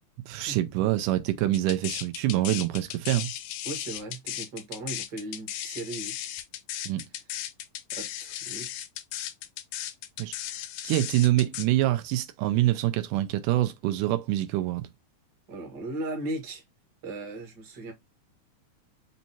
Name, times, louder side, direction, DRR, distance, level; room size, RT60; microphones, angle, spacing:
voice 1, 0.3-3.3 6.9-7.0 10.2-10.3 10.8-14.9, right 15 dB, 85° right, 2.1 m, -25 dB
sound 1, 1.5-11.7, left 12 dB, 85° left, 2.2 m, -36 dB
voice 2, 3.6-6.1 7.9-8.7 15.5-16.6 17.0-17.9, right 2 dB, 45° right, 1.6 m, -37 dB
5.4 x 2.8 x 2.8 m
omnidirectional pair, 3.7 m